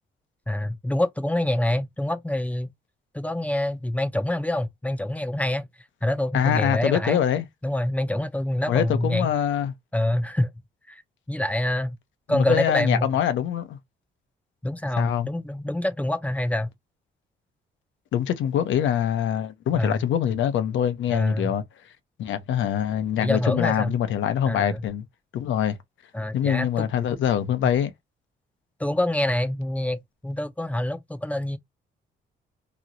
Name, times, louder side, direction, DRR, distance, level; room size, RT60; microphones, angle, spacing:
voice 1, 0.5-2.7 3.1-5.7 6.0-7.2 7.6-9.3 9.9-10.5 10.9-11.0 11.3-12.0 12.3-13.1 14.6-16.7 19.7-20.0 21.1-21.5 23.2-24.0 24.5-24.8 26.1-26.9 27.6-27.7 28.8-31.6, left 1 dB, 5° left, 0.5 m, -26 dB
voice 2, 6.3-7.5 8.7-9.7 12.3-13.8 15.0-15.3 18.1-21.6 22.2-25.0 25.3-25.8 26.3-27.9, left 9 dB, 75° left, 0.7 m, -24 dB
3.0 x 2.8 x 2.6 m
cardioid pair, 90°, 20 cm